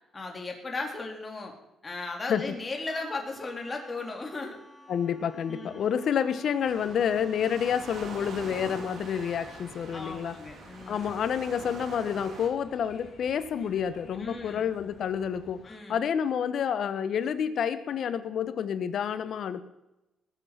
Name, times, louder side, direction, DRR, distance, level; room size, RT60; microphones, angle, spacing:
voice 1, 0.1-1.5 1.8-4.6 5.5-5.8 9.9-11.0 14.2-14.7 15.6-16.0, left 3 dB, 25° left, 1 dB, 3.8 m, -36 dB
Wind instrument woodwind instrument, 2.5-10.1, left 1 dB, 10° left, 6.8 m, -53 dB
voice 2, 4.9-10.3 10.9-19.6, left 8 dB, 65° left, 11 dB, 1.2 m, -29 dB
Waves surf, 6.6-12.5, right 4 dB, 60° right, 2.5 m, -44 dB
sound 1, 8.2-15.7, left 4 dB, 45° left, 3.0 m, -55 dB
20.0 x 8.2 x 6.0 m, 0.94 s
cardioid pair, 90°, 0 cm